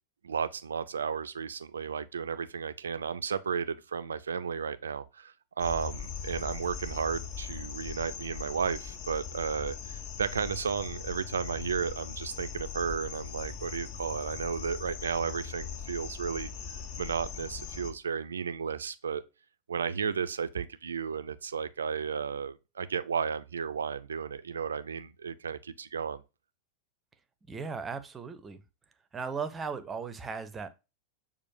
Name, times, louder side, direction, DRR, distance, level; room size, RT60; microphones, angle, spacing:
voice 1, 0.2-19.2 19.7-26.2, right 6 dB, 70° right, 0.3 m, -33 dB
sound 1, 5.6-17.9, left 7 dB, 40° left, 0.6 m, -40 dB
voice 2, 27.5-28.6 29.1-30.7, right 5 dB, 15° right, 0.5 m, -37 dB
6.2 x 2.4 x 2.6 m
figure-of-eight pair, 90°, 0 cm